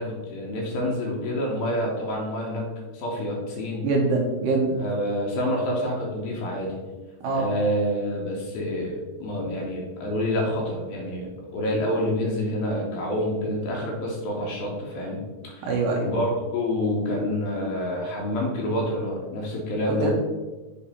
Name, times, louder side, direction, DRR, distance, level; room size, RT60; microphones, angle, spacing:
voice 1, 0.0-2.6 2.9-3.8 4.8-6.8 7.3-15.2 15.4-15.7 16.0-20.1, left 1 dB, 75° left, -2 dB, 2.6 m, -27 dB
voice 2, 3.8-4.8 7.2-7.5 15.6-16.1 20.0-20.1, right 3 dB, 75° right, -1 dB, 2.0 m, -23 dB
6.9 x 3.2 x 4.3 m, 1.2 s
omnidirectional pair, 4.4 m